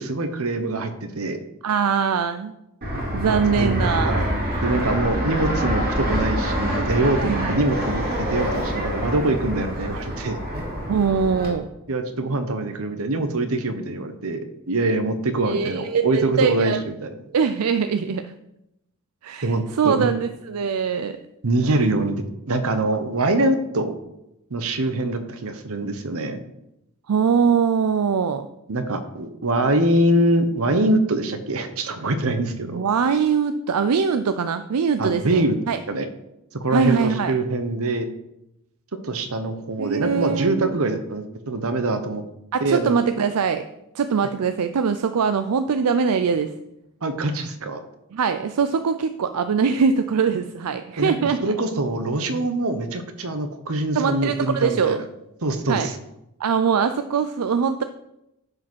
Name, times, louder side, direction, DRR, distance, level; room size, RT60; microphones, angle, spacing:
voice 1, 0.0-1.4 3.2-4.3 4.6-10.7 11.9-17.1 19.4-20.1 21.4-23.9 24.5-26.4 28.7-32.8 35.0-35.6 35.9-36.1 36.5-38.1 39.0-42.2 42.6-43.0 47.0-47.8 51.0-55.0 55.4-56.0, right 2 dB, 65° right, 9 dB, 1.0 m, -24 dB
voice 2, 1.6-2.5 3.1-4.2 7.2-7.6 10.9-11.7 15.5-16.8 17.3-18.3 19.2-21.2 27.1-28.5 32.7-35.8 36.7-37.3 39.8-40.8 42.5-43.7 43.9-46.5 48.1-51.5 53.9-55.0 55.7-55.9 56.4-57.8, right 6 dB, 80° right, 10 dB, 0.5 m, -22 dB
Fixed-wing aircraft airplane, 2.8-11.5, equal, 45° right, 2.7 m, -26 dB
9.9 x 4.9 x 6.2 m, 0.87 s
head